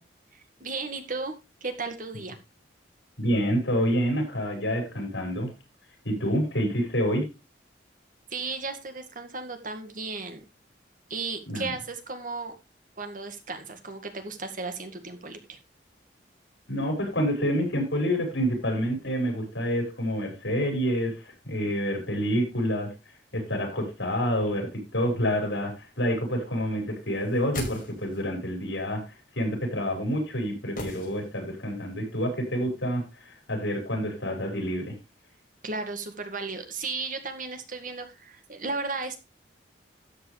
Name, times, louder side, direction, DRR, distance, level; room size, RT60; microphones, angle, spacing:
voice 1, 0.3-1.3 1.6-2.4 8.3-10.4 11.1-12.5 13.0-15.6 35.6-39.2, right 3 dB, 50° right, 7 dB, 1.9 m, -35 dB
voice 2, 3.2-5.5 6.0-7.3 11.5-11.7 16.7-22.9 23.3-29.0 29.4-34.9, equal, 85° left, 3 dB, 5.7 m, -28 dB
sound 1, 27.2-28.4 30.8-31.7 31.9-32.0, left 2 dB, 50° left, 5.4 m, -38 dB
13.0 x 8.0 x 3.3 m, 0.27 s
head